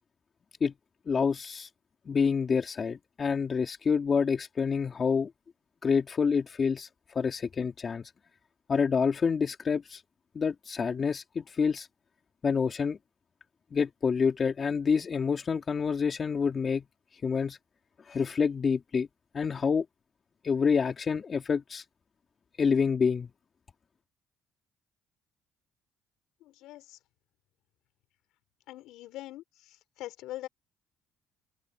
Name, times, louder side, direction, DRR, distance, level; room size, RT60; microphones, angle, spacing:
voice 1, 1.1-1.7 2.1-5.3 5.8-8.1 8.7-10.0 10.3-11.9 12.4-13.0 13.7-16.8 17.2-17.6 18.0-19.1 19.3-19.8 20.4-21.8 22.6-23.3, left 5 dB, 40° left, 2.7 m, -27 dB
voice 2, 26.4-27.0 28.7-30.5, left 15 dB, 80° left, 5.7 m, -43 dB
open air
supercardioid pair, 75°, 0 cm